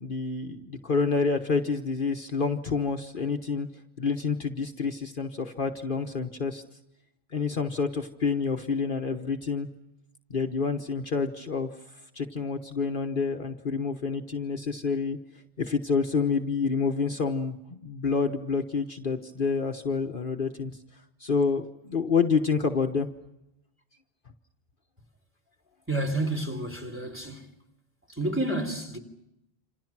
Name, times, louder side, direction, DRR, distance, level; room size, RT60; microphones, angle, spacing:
voice 1, 0.0-3.7 4.0-6.6 7.3-9.7 10.3-11.7 12.1-15.2 15.6-20.7 21.2-23.1, left 5 dB, 50° left, 1.3 m, -28 dB
voice 2, 25.9-27.5 28.1-29.0, right 1 dB, 10° right, 3.6 m, -30 dB
28.0 x 27.5 x 6.1 m
omnidirectional pair, 1.1 m